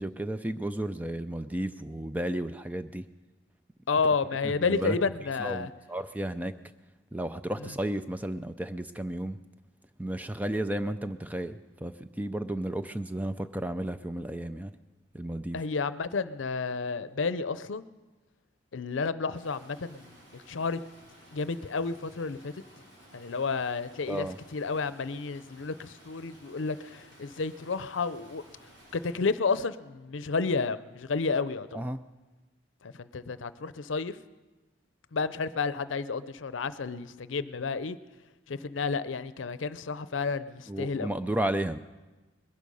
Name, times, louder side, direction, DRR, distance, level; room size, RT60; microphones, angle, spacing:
voice 1, 0.0-3.0 4.4-5.0 5.4-6.5 7.1-9.4 10.0-14.7 15.1-15.6 24.1-24.4 31.7-32.0 40.7-41.8, right 1 dB, 10° right, 10 dB, 0.4 m, -33 dB
voice 2, 3.9-5.7 7.6-7.7 15.5-17.9 18.7-20.8 21.3-22.6 23.1-28.4 28.9-31.9 32.8-34.2 35.1-38.0 38.5-41.1, left 4 dB, 90° left, 14 dB, 0.6 m, -31 dB
Stream, 19.3-29.1, equal, 70° right, 5.8 m, -55 dB
20.5 x 11.5 x 5.4 m, 1.2 s
head